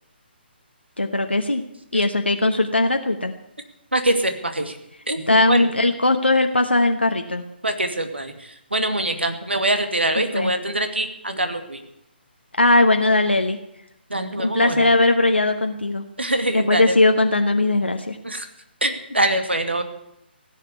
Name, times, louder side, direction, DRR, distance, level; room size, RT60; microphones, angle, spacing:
voice 1, 1.0-1.6 1.9-3.3 5.3-7.4 10.3-10.5 12.5-13.6 14.4-16.0 16.5-18.2, left 2 dB, 80° left, 4 dB, 1.2 m, -19 dB
voice 2, 3.9-4.8 5.1-5.7 7.6-11.8 14.1-14.9 16.2-17.0 18.2-18.5 18.8-19.8, right 1 dB, 80° right, 7 dB, 2.3 m, -24 dB
16.0 x 7.9 x 9.5 m, 0.84 s
figure-of-eight pair, 140°, 6 cm